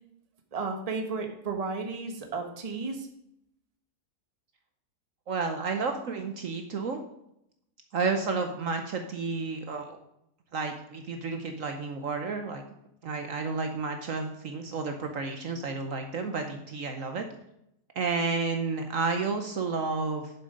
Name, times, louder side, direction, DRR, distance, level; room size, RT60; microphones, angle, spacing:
voice 1, 0.5-3.1, right 4 dB, 25° right, 3 dB, 1.1 m, -33 dB
voice 2, 5.3-7.0 7.9-10.0 10.5-12.6 13.0-17.2 17.9-20.3, right 4 dB, 60° right, 5 dB, 1.2 m, -31 dB
7.5 x 7.1 x 5.1 m, 0.79 s
omnidirectional pair, 1.7 m